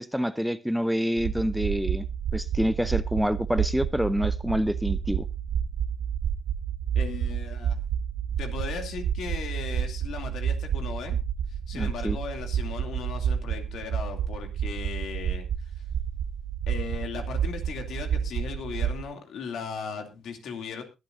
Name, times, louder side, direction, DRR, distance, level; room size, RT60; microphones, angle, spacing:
voice 1, 0.0-2.1 2.3-5.2 11.7-12.2, equal, ahead, 14 dB, 0.6 m, -27 dB
sound 1, 1.2-19.0, right 8 dB, 70° right, 1.0 m, -30 dB
voice 2, 7.0-7.8 8.4-11.2 11.7-15.5 16.7-20.8, left 6 dB, 75° left, 5 dB, 2.6 m, -37 dB
21.5 x 8.6 x 2.6 m, 0.26 s
cardioid pair, 90°, 0 cm